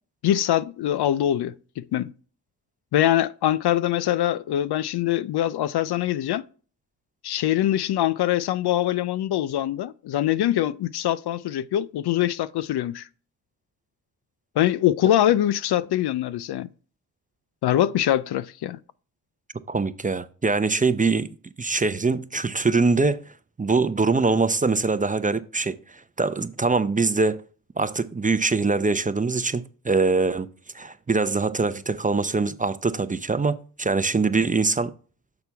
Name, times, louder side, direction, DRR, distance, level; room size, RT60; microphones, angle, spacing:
voice 1, 0.2-2.1 2.9-6.5 7.2-13.1 14.6-16.7 17.6-18.8, left 12 dB, 65° left, 0.5 m, -23 dB
voice 2, 19.7-21.3 21.6-23.2 23.6-27.4 27.8-30.5 30.7-34.9, right 4 dB, 20° right, 0.5 m, -23 dB
6.9 x 5.9 x 3.4 m
supercardioid pair, 45°, 43 cm